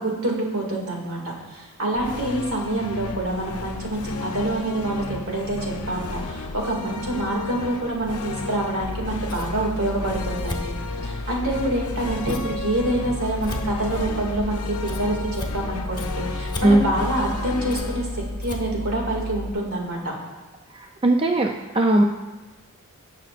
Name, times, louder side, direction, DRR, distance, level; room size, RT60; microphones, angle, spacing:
voice 1, 0.0-10.7 11.0-18.1 18.4-20.1, right 1 dB, 70° right, -1 dB, 2.3 m, -26 dB
sound 1, 1.9-19.4, left 3 dB, 90° left, 0.7 m, -34 dB
Scissors, 8.8-19.5, left 2 dB, 20° left, 1.2 m, -32 dB
voice 2, 20.7-22.0, right 1 dB, 25° right, 2 dB, 0.5 m, -19 dB
18.5 x 6.6 x 2.5 m, 1.2 s
head